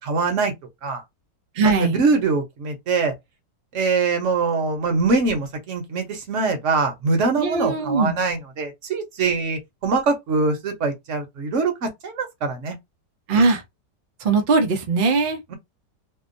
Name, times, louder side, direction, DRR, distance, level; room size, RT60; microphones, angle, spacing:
voice 1, 0.0-0.5 0.8-1.0 1.6-3.1 3.7-12.8, right 4 dB, 55° right, 1.0 m, -23 dB
voice 2, 1.6-2.0 7.4-8.1 13.3-13.6 14.2-15.4, right 4 dB, 70° right, 0.4 m, -20 dB
2.8 x 2.2 x 2.5 m
omnidirectional pair, 1.7 m